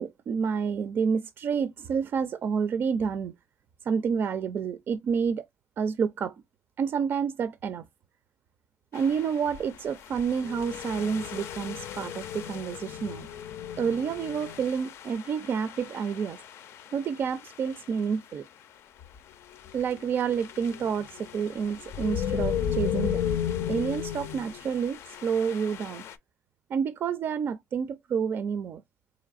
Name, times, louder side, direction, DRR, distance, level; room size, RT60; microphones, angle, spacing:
voice 1, 0.0-3.3 3.8-5.4 5.8-6.4 6.8-7.9 8.9-13.3 13.8-16.4 16.9-18.4 19.7-23.3 23.7-26.0 26.7-28.8, right 6 dB, 55° right, 0.4 m, -29 dB
sound 1, 8.9-18.1 19.0-19.2 19.5-26.2, left 9 dB, 80° left, 0.4 m, -35 dB
4.0 x 2.9 x 2.5 m
cardioid pair, 120°, 4 cm